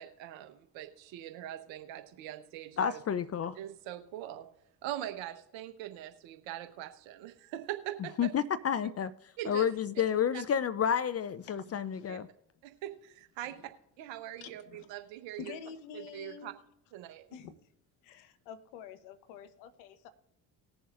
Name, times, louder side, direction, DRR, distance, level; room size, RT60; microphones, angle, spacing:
voice 1, 0.0-3.0 3.5-4.5 4.8-8.3 9.4-9.7 10.3-10.4 12.1-12.2 12.6-13.6 14.0-15.5 16.1-16.5 16.9-17.2, right 12 dB, 70° right, 1.3 m, -42 dB
voice 2, 2.8-3.6 8.2-9.1 9.5-12.3, left 8 dB, 35° left, 0.5 m, -30 dB
voice 3, 11.4-12.1 13.4-13.7 14.4-14.9 15.4-16.5 17.3-17.6 18.0-20.1, left 7 dB, 75° left, 1.1 m, -48 dB
20.0 x 7.0 x 2.5 m
hypercardioid pair, 55°, 46 cm